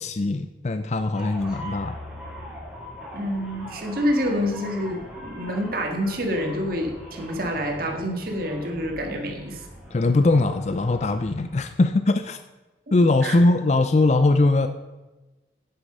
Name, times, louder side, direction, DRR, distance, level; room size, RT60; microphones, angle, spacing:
voice 1, 0.0-2.0 9.9-12.4 12.9-14.7, left 2 dB, 40° left, 9 dB, 0.4 m, -21 dB
sound 1, 1.1-11.6, equal, 5° right, 3.4 m, -41 dB
voice 2, 3.1-9.7 13.2-13.4, equal, 55° right, 2 dB, 1.7 m, -27 dB
9.3 x 7.9 x 5.4 m, 1.1 s
head